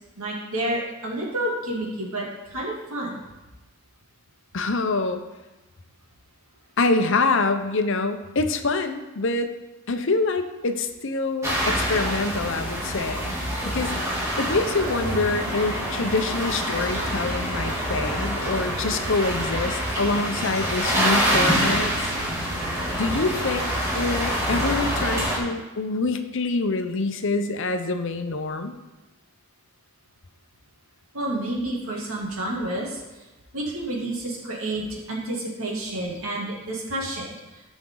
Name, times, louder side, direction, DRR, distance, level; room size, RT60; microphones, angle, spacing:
voice 1, 0.2-3.2 31.1-33.0 33.5-37.3, right 1 dB, 90° right, -4 dB, 2.8 m, -29 dB
voice 2, 4.5-5.2 6.8-9.5 9.9-13.4 13.6-22.1 22.9-28.7, left 3 dB, 60° left, 8 dB, 0.8 m, -26 dB
sound 1, 11.4-25.4, equal, 15° right, 2.6 m, -26 dB
14.5 x 6.1 x 3.9 m, 1.1 s
head